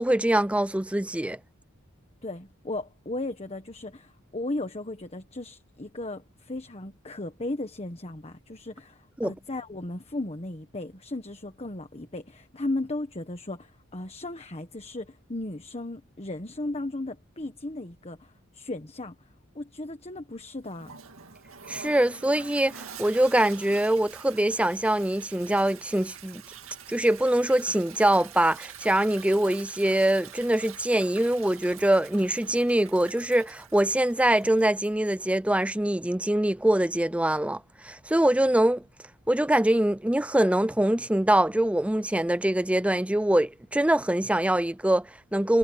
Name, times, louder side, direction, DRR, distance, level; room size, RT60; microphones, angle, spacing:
voice 1, 0.0-1.4 9.2-9.3 21.7-26.4 26.9-38.8 39.3-45.6, right 1 dB, 5° right, 0.5 m, -24 dB
voice 2, 2.2-19.1 19.5-21.0, left 2 dB, 30° left, 1.3 m, -36 dB
Toilet flush, 20.7-35.3, right 8 dB, 85° right, 2.0 m, -46 dB
head